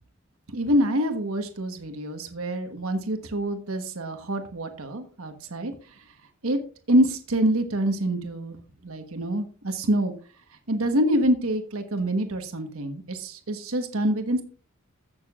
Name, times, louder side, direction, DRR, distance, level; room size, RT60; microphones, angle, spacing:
voice 1, 0.5-5.7 6.4-6.6 6.9-8.6 8.8-10.1 10.7-14.4, right 1 dB, 75° right, 6 dB, 1.3 m, -26 dB
15.5 x 6.7 x 2.4 m, 0.39 s
head